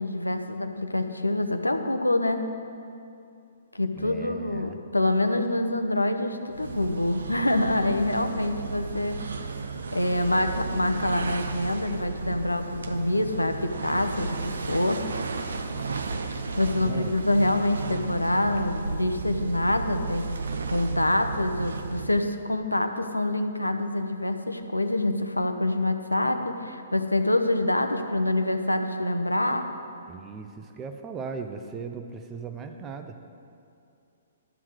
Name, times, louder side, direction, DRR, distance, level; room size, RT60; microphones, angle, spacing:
voice 1, 0.0-2.5 3.7-9.2 9.9-15.1 16.6-20.4 20.7-29.7, left 1 dB, 90° left, 7 dB, 0.8 m, -26 dB
voice 2, 4.0-4.8 16.8-17.1 30.1-33.2, right 5 dB, 20° right, 6 dB, 0.7 m, -38 dB
sound 1, 6.5-22.3, right 4 dB, 65° right, 0.8 m, -34 dB
12.0 x 7.2 x 6.4 m, 2.5 s
figure-of-eight pair, 125°, 0 cm